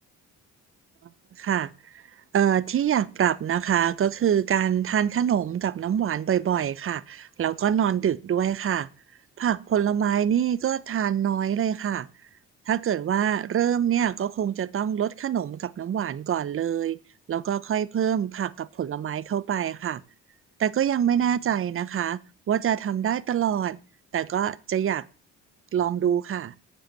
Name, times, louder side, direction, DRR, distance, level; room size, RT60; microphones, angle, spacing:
voice 1, 1.4-1.7 2.3-8.9 9.4-12.1 12.7-17.0 17.3-20.0 20.6-22.2 22.5-23.8 24.1-25.0 25.7-26.5, right 9 dB, 45° right, 0.7 m, -25 dB
8.5 x 7.6 x 7.4 m
cardioid pair, 90°, 30 cm